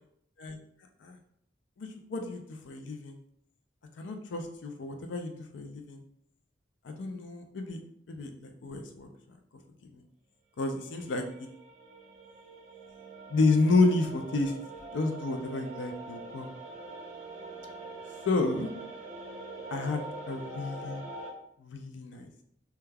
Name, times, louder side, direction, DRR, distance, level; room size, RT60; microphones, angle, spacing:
voice 1, 1.8-3.2 4.0-6.0 6.8-7.8 8.1-9.1 9.9-10.0 10.6-11.5 13.3-14.5 14.9-16.5 18.3-18.7 19.7-21.0 21.6-22.4, left 3 dB, 80° left, 5 dB, 0.4 m, -30 dB
sound 1, 10.9-21.3, right 2 dB, 40° right, 0.6 m, -44 dB
3.3 x 2.2 x 2.2 m, 0.72 s
head